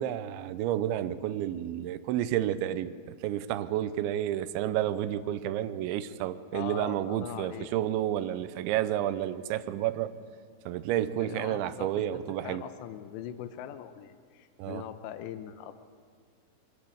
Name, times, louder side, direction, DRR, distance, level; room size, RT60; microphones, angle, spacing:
voice 1, 0.0-10.1 10.7-12.6 14.6-14.8, right 12 dB, 80° right, 13 dB, 2.9 m, -30 dB
voice 2, 6.5-7.7 11.1-15.8, left 10 dB, 80° left, 9 dB, 2.8 m, -41 dB
24.5 x 12.0 x 8.6 m, 2.1 s
omnidirectional pair, 5.5 m